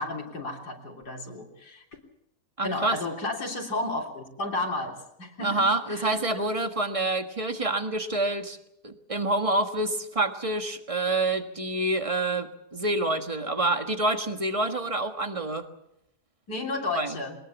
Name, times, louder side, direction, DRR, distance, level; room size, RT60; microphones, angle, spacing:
voice 1, 0.0-1.8 2.6-4.9 5.2-6.4 16.5-17.4, left 2 dB, 85° left, -1 dB, 4.0 m, -33 dB
voice 2, 2.6-3.0 5.4-8.6 8.8-15.7 16.9-17.2, right 2 dB, 20° right, 7 dB, 1.5 m, -27 dB
22.0 x 20.5 x 7.2 m, 0.81 s
omnidirectional pair, 1.7 m